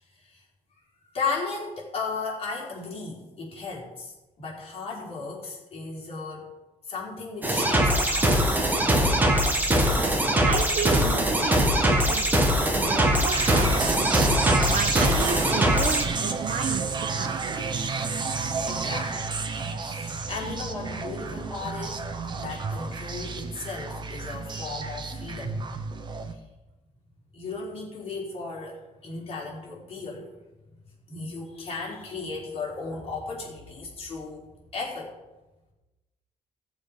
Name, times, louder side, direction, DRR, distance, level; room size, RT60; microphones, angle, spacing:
voice 1, 1.1-6.5 6.9-8.4 18.6-19.3 19.8-22.0 22.4-25.7 26.3-26.4 27.3-30.3 31.1-35.2, left 4 dB, 50° left, -5 dB, 4.1 m, -35 dB
sound 1, 7.4-16.0, right 1 dB, 15° right, 1.6 m, -22 dB
voice 2, 9.9-10.2 10.5-12.3 12.7-14.0 14.7-17.6, right 6 dB, 70° right, 6 dB, 1.2 m, -33 dB
sound 2, 13.3-26.3, right 4 dB, 35° right, 1.0 m, -31 dB
17.0 x 7.2 x 5.0 m, 1.1 s
cardioid pair, 145°, 13 cm